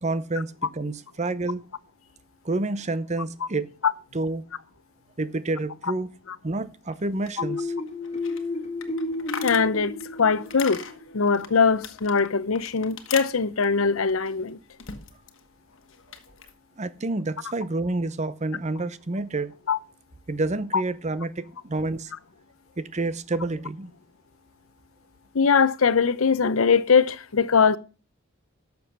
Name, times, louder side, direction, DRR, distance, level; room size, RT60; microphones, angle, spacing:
voice 1, 0.0-1.6 2.4-3.7 4.1-4.4 5.2-6.1 6.4-7.7 16.8-19.5 20.3-22.1 22.8-23.9, right 2 dB, 35° right, 0.8 m, -29 dB
sound 1, 6.9-15.4 15.7-16.5, left 7 dB, 65° left, 1.4 m, -41 dB
sound 2, 7.4-11.0, left 2 dB, 30° left, 2.1 m, -32 dB
voice 2, 9.4-9.9 10.2-10.8 11.1-14.6 19.7-19.8 20.7-20.8 25.3-27.8, left 5 dB, 85° left, 0.7 m, -21 dB
12.0 x 7.0 x 5.9 m
head